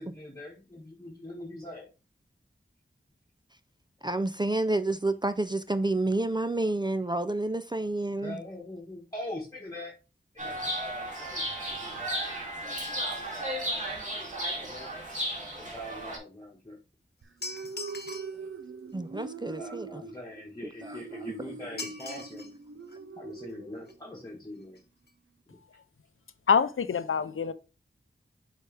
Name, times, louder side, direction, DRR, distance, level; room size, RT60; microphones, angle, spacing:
voice 1, 0.0-1.9 8.2-9.9 10.3-11.4 11.7-12.3 12.6-14.9 15.6-16.8 19.4-22.5 23.2-24.8, left 1 dB, 20° left, 1.5 m, -43 dB
voice 2, 4.0-8.4 18.9-20.0 20.8-21.0, right 2 dB, 20° right, 0.4 m, -29 dB
Chirp tweet, 10.4-16.2, right 1 dB, 40° right, 2.7 m, -34 dB
sound 1, 17.2-24.3, right 4 dB, 75° right, 0.7 m, -43 dB
sound 2, 17.4-18.4 21.8-22.5 22.9-23.0 23.9-24.0 24.3-24.4 24.6-24.8 25.1-25.2, left 2 dB, 50° left, 1.1 m, -40 dB
voice 3, 26.5-27.5, left 6 dB, 85° left, 0.6 m, -25 dB
6.6 x 4.9 x 3.3 m
wide cardioid pair, 65°, 21 cm